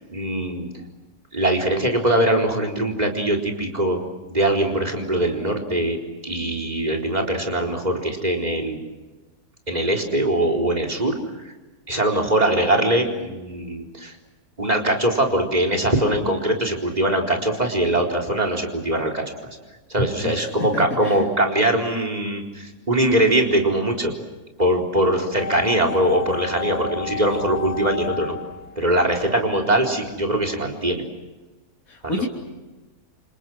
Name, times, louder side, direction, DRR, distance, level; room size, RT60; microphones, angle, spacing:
voice 1, 0.1-0.7 1.3-4.0 4.3-6.0 6.2-8.8 9.7-11.1 11.4-11.5 11.9-14.1 14.6-19.3 19.9-24.1 24.6-28.3 28.8-31.0 32.2-32.3, right 1 dB, 25° right, 4 dB, 4.4 m, -22 dB
voice 2, 20.7-21.2 31.9-32.3, left 2 dB, 70° left, -2 dB, 3.7 m, -29 dB
sound 1, 25.4-29.5 29.7-29.8, left 9 dB, 65° right, 5.2 m, -33 dB
29.5 x 28.0 x 6.3 m, 1.2 s
omnidirectional pair, 1.6 m